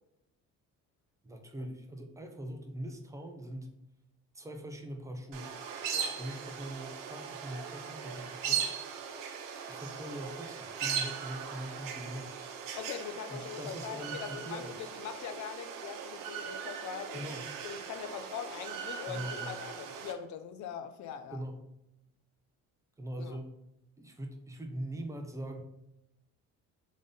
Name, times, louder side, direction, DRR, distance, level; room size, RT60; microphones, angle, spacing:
voice 1, 1.2-3.8 4.3-5.6 6.2-8.7 9.7-12.4 13.3-14.9 17.1-17.4 19.1-19.6 21.3-21.6 23.0-23.6 24.0-25.6, right 1 dB, 10° right, 0.6 m, -42 dB
sound 1, 5.3-20.1, right 7 dB, 85° right, 0.8 m, -39 dB
voice 2, 5.9-6.2 12.7-17.2 17.6-21.4 23.2-23.4, left 8 dB, 60° left, 0.6 m, -42 dB
3.7 x 3.7 x 3.9 m
cardioid pair, 125°, 33 cm